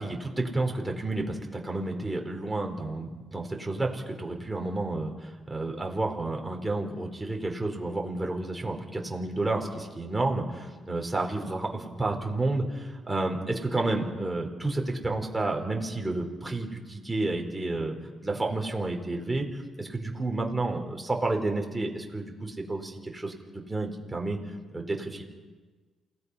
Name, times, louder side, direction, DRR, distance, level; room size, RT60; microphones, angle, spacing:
voice 1, 0.0-24.4 24.7-25.2, right 2 dB, 15° right, 2 dB, 4.3 m, -31 dB
28.5 x 18.0 x 5.7 m, 1.4 s
cardioid pair, 90°, 0 cm